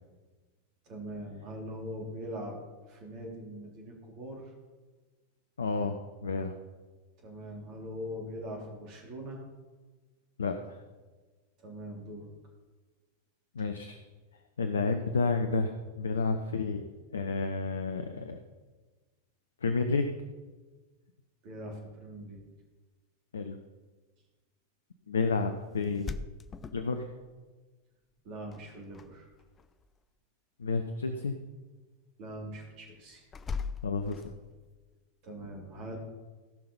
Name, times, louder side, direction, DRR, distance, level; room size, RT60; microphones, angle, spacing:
voice 1, 0.8-2.6 2.9-4.4 7.2-9.4 11.6-12.3 21.4-22.4 28.2-29.3 32.2-33.3 35.2-36.0, equal, 40° right, 0 dB, 3.2 m, -42 dB
voice 2, 5.6-6.5 10.4-10.8 13.5-14.0 14.6-16.8 17.1-18.4 19.6-20.1 23.3-23.6 25.1-26.1 26.7-27.1 30.6-31.4 33.8-34.3, left 4 dB, 70° left, 8 dB, 0.7 m, -30 dB
sound 1, 25.8-27.4 28.5-29.1 29.3-29.9 33.3-34.7, left 5 dB, 20° left, 0.5 m, -39 dB
17.0 x 5.7 x 5.4 m, 1.3 s
figure-of-eight pair, 90°, 0 cm